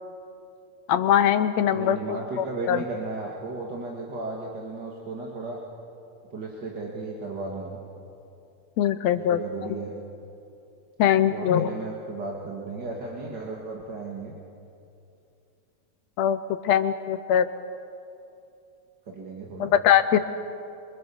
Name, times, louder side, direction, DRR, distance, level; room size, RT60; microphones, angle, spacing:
voice 1, 0.9-2.8 8.8-9.4 11.0-11.7 16.2-17.5 19.6-20.2, left 10 dB, 70° left, 11 dB, 1.8 m, -22 dB
voice 2, 1.7-5.6 6.3-7.8 9.1-9.9 11.0-14.3 19.1-19.7, right 3 dB, 40° right, -2 dB, 2.3 m, -35 dB
28.0 x 25.0 x 7.1 m, 2.7 s
omnidirectional pair, 3.5 m